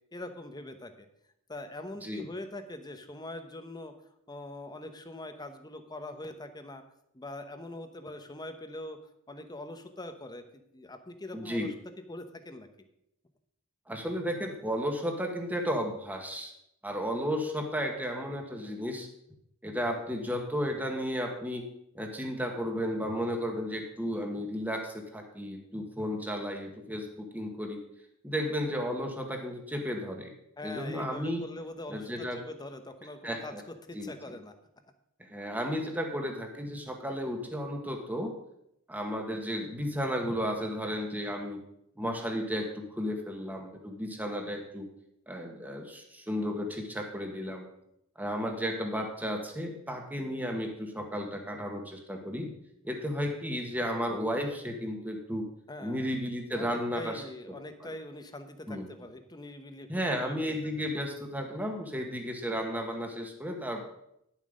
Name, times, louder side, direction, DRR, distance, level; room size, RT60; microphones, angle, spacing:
voice 1, 0.1-1.1 1.5-3.9 4.3-6.8 7.1-9.0 9.3-10.4 10.7-11.7 12.1-12.7 30.6-34.5 55.7-56.1 56.5-60.9, left 1 dB, 20° left, 8 dB, 0.9 m, -43 dB
voice 2, 11.3-11.7 13.9-16.5 16.8-19.1 19.6-21.6 21.9-27.8 28.2-30.3 30.6-31.4 31.9-32.4 33.2-33.6 33.9-34.3 35.2-38.3 38.9-41.6 42.0-44.9 45.3-47.7 48.2-52.5 52.8-55.5 55.8-58.0 58.7-58.9 59.9-63.8, equal, 10° right, 3 dB, 1.5 m, -33 dB
11.0 x 7.5 x 5.2 m, 0.78 s
head